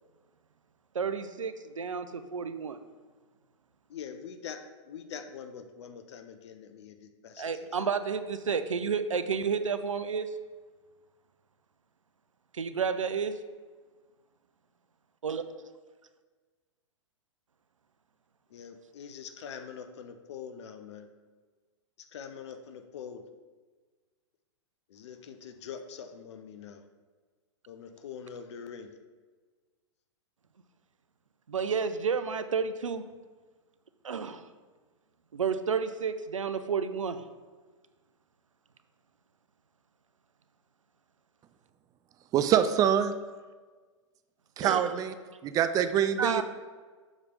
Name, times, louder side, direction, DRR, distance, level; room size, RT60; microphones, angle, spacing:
voice 1, 0.9-2.8 7.4-10.3 12.5-13.3 15.2-15.4 31.5-33.0 34.0-34.4 35.3-37.2 44.6-44.9 46.2-46.4, right 6 dB, 85° right, 11 dB, 0.5 m, -31 dB
voice 2, 3.9-7.4 18.5-21.1 22.1-23.2 24.9-26.8 27.7-28.9, left 7 dB, 60° left, 8 dB, 0.6 m, -44 dB
voice 3, 42.3-43.1 44.6-45.1 45.4-46.4, right 9 dB, 20° right, 10 dB, 0.4 m, -25 dB
7.2 x 3.3 x 5.2 m, 1.4 s
figure-of-eight pair, 105°, 16 cm